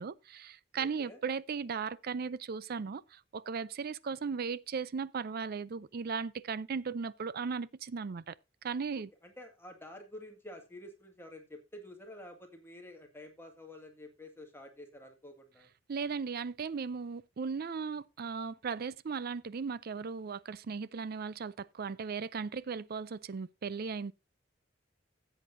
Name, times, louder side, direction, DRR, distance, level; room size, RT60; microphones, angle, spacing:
voice 1, 0.0-8.3 8.6-9.1 15.9-24.1, right 5 dB, 50° right, 0.5 m, -37 dB
voice 2, 0.7-1.2 9.2-15.7, left 1 dB, 15° left, 1.9 m, -49 dB
15.5 x 8.1 x 2.6 m
head